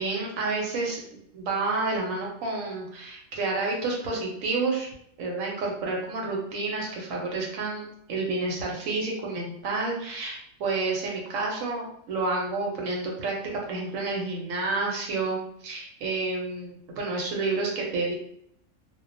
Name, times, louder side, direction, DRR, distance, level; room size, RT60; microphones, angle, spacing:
voice 1, 0.0-4.9 5.2-18.1, right 3 dB, 80° right, -1 dB, 1.0 m, -30 dB
2.3 x 2.2 x 2.5 m, 0.70 s
omnidirectional pair, 1.4 m